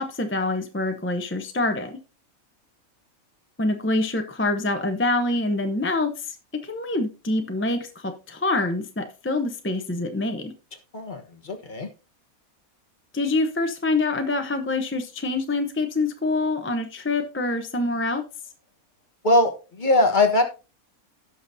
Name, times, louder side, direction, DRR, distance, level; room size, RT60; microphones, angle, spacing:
voice 1, 0.0-2.0 3.6-6.4 6.6-10.5 13.1-18.2, left 2 dB, 10° left, 0.6 m, -25 dB
voice 2, 10.9-11.9 19.2-20.4, left 2 dB, 35° left, 1.3 m, -21 dB
16.5 x 5.8 x 2.7 m
omnidirectional pair, 1.5 m